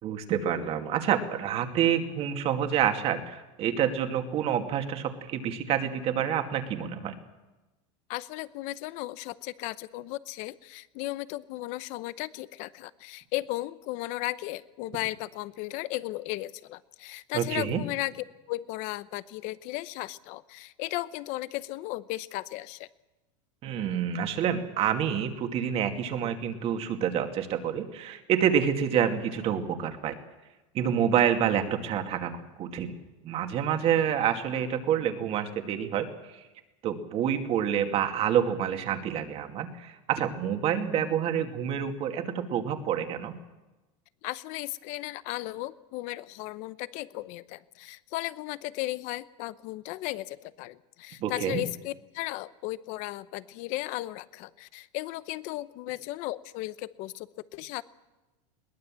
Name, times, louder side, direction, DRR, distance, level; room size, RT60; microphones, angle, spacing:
voice 1, 0.0-7.2 17.3-17.8 23.6-30.2 30.7-32.3 32.6-33.0 33.2-36.1 36.8-43.3 51.2-51.6, right 9 dB, 35° right, 6 dB, 2.4 m, -28 dB
voice 2, 8.1-18.1 18.5-22.9 44.2-57.8, left 18 dB, 50° left, 16 dB, 0.9 m, -35 dB
22.0 x 19.0 x 7.6 m, 1.1 s
supercardioid pair, 150°, 16 cm